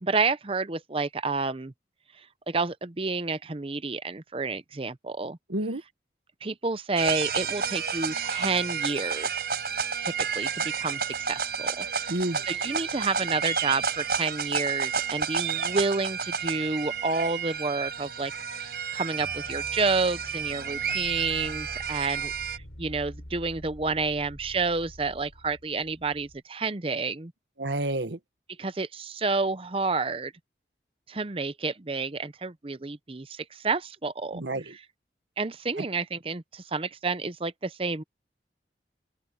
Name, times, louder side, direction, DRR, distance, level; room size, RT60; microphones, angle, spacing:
voice 1, 0.0-1.7 2.5-5.4 6.4-9.4 10.0-12.1 12.5-27.3 28.6-30.3 31.1-34.4 35.4-38.0, right 4 dB, 30° right, 0.7 m, -30 dB
voice 2, 5.5-5.8 12.1-12.4 27.6-28.2 34.3-34.7 35.8-35.9, right 1 dB, 80° right, 1.4 m, -30 dB
sound 1, 7.0-22.6, right 6 dB, 60° right, 5.4 m, -31 dB
sound 2, 19.2-26.4, equal, 70° left, 4.7 m, -46 dB
open air
head